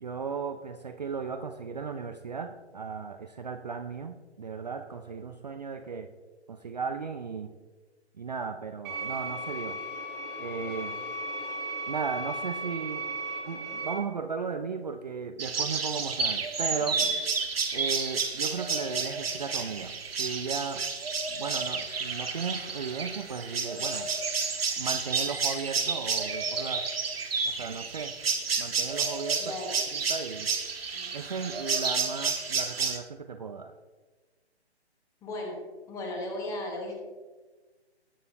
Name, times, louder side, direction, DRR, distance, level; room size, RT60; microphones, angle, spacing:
voice 1, 0.0-6.1 6.5-7.5 8.2-9.8 10.4-11.0 11.9-13.0 13.4-17.0 17.7-20.8 21.3-24.1 24.8-26.9 27.4-28.1 28.6-29.5 29.9-30.5 31.1-33.7, right 5 dB, 40° right, 7 dB, 0.5 m, -36 dB
sound 1, 8.8-13.9, right 1 dB, 15° right, 1.4 m, -36 dB
sound 2, 15.4-33.0, right 5 dB, 60° right, 1.5 m, -30 dB
voice 2, 29.4-29.8 30.9-31.1 35.2-35.6 35.9-36.9, left 1 dB, 10° left, 1 dB, 1.1 m, -36 dB
18.5 x 6.7 x 2.7 m, 1.3 s
figure-of-eight pair, 145°, 34 cm